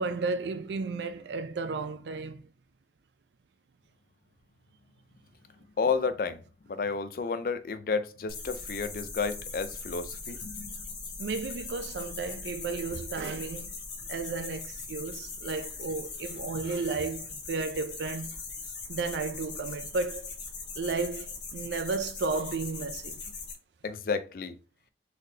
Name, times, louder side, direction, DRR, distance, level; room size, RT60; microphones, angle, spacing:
voice 1, 0.0-2.5 11.2-13.7 14.1-18.3 18.9-20.3 20.8-23.2, right 4 dB, 75° right, 0.4 m, -33 dB
voice 2, 5.8-6.4 6.7-10.7 23.8-24.6, left 5 dB, 50° left, 0.4 m, -31 dB
sound 1, 8.3-23.5, left 4 dB, 80° left, 1.2 m, -40 dB
3.9 x 3.3 x 2.7 m
head